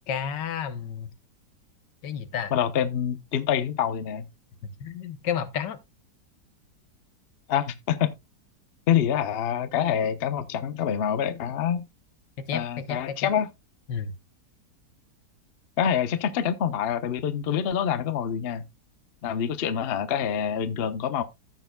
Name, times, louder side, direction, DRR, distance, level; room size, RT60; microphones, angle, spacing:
voice 1, 0.1-1.1 2.0-2.5 4.8-5.8 12.4-13.3 13.9-14.1, left 8 dB, 80° left, 1.6 m, -31 dB
voice 2, 2.5-4.3 7.5-8.1 8.9-11.9 12.5-13.5 15.8-18.6 19.2-21.2, left 9 dB, 50° left, 0.7 m, -26 dB
15.0 x 6.7 x 2.2 m
omnidirectional pair, 1.9 m